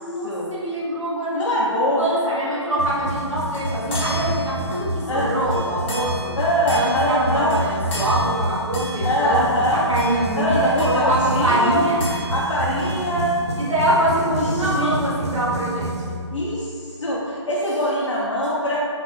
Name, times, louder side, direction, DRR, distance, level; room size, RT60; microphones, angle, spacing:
voice 1, 0.0-1.5 2.0-6.3 6.7-9.4 9.7-12.0 13.6-16.2 18.0-18.1, equal, 85° right, -8 dB, 1.2 m, -24 dB
voice 2, 1.3-2.0 5.1-5.3 6.4-7.5 9.0-9.8 10.4-11.9 12.2-13.3 14.5-14.9 16.3-18.8, equal, 75° left, -7 dB, 0.6 m, -22 dB
sound 1, 2.8-16.7, right 2 dB, 65° right, 0.4 m, -29 dB
sound 2, 3.0-13.7, equal, 20° left, 0.7 m, -35 dB
3.1 x 2.6 x 3.0 m, 2.2 s
hypercardioid pair, 160°, 16 cm